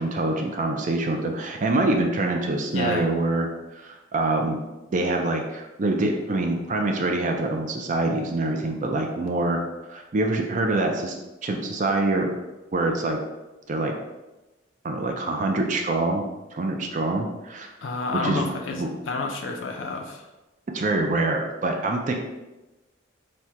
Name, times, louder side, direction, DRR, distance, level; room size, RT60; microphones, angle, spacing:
voice 1, 0.0-4.6 4.9-9.6 9.9-11.2 11.4-12.3 12.7-13.2 13.7-13.9 14.8-16.2 16.5-17.7 18.1-18.9 20.7-22.1, right 2 dB, 40° right, 2 dB, 0.4 m, -25 dB
voice 2, 2.7-3.1 17.8-20.2, left 3 dB, 80° left, 3 dB, 0.5 m, -29 dB
4.2 x 2.2 x 4.6 m, 1.1 s
head